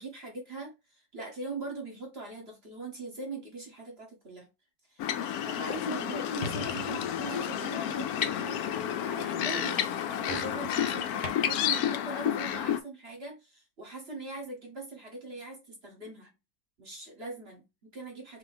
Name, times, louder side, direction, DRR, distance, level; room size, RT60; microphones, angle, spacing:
voice 1, 0.0-4.5 4.9-5.1 5.4-9.9 10.2-16.3 16.8-18.4, right 3 dB, 40° right, 1.0 m, -41 dB
sound 1, 5.0-12.8, left 10 dB, 80° left, 0.8 m, -31 dB
sound 2, 6.0-11.3, left 3 dB, 35° left, 0.7 m, -43 dB
4.0 x 2.7 x 4.0 m
omnidirectional pair, 2.1 m